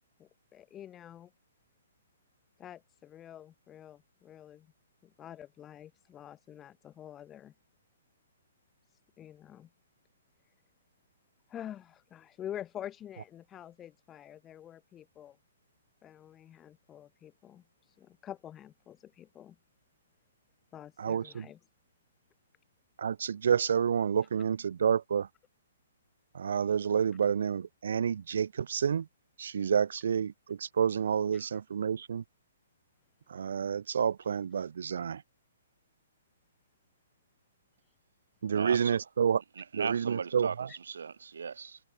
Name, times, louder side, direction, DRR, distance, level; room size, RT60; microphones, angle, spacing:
voice 1, 0.2-1.3 2.6-4.7 5.0-7.5 9.2-9.7 11.5-15.4 16.0-19.6 20.7-21.6 31.3-31.4 40.7-40.8, left 10 dB, 15° left, 1.8 m, -47 dB
voice 2, 21.0-21.5 23.0-25.3 26.3-29.1 29.4-32.2 33.3-35.2 38.4-39.4 39.7-40.7, right 7 dB, 70° right, 0.5 m, -29 dB
voice 3, 38.5-39.0 39.6-41.8, right 6 dB, 90° right, 3.7 m, -37 dB
hypercardioid pair, 165°, 0 cm